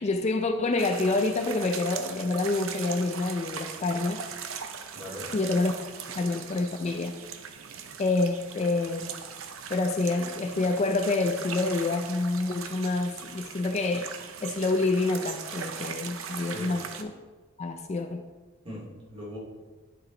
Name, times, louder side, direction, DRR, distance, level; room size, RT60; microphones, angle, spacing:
voice 1, 0.0-4.2 5.3-5.7 6.2-7.1 8.0-9.2 9.7-14.1 14.4-17.1 17.6-18.2, left 3 dB, 35° left, 6 dB, 0.4 m, -27 dB
sound 1, 0.8-17.0, right 7 dB, 80° right, 0.6 m, -40 dB
voice 2, 4.9-5.3 16.4-16.7 18.6-19.4, left 1 dB, 30° right, -4 dB, 2.5 m, -40 dB
10.5 x 4.6 x 3.9 m, 1.3 s
head